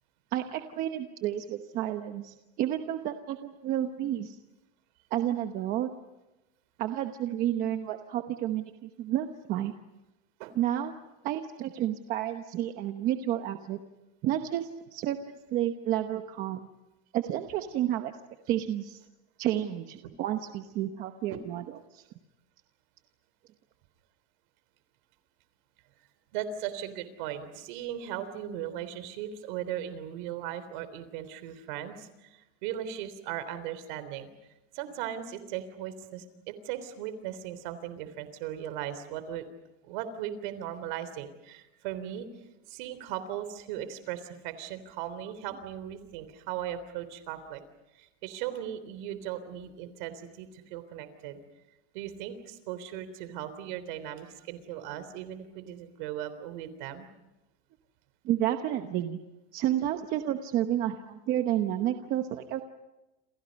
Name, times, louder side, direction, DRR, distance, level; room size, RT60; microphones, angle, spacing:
voice 1, 0.3-4.4 5.1-5.9 6.8-9.7 10.5-10.9 11.2-13.8 14.2-16.7 17.1-18.1 18.5-19.0 19.4-22.0 58.2-59.2 59.5-62.6, right 12 dB, 30° right, 7 dB, 1.0 m, -31 dB
voice 2, 26.3-34.3 34.7-39.4 39.8-42.3 42.7-47.6 47.9-51.4 51.9-57.1, right 10 dB, 50° right, 12 dB, 3.5 m, -38 dB
29.0 x 28.5 x 5.3 m, 1.0 s
supercardioid pair, 175°, 31 cm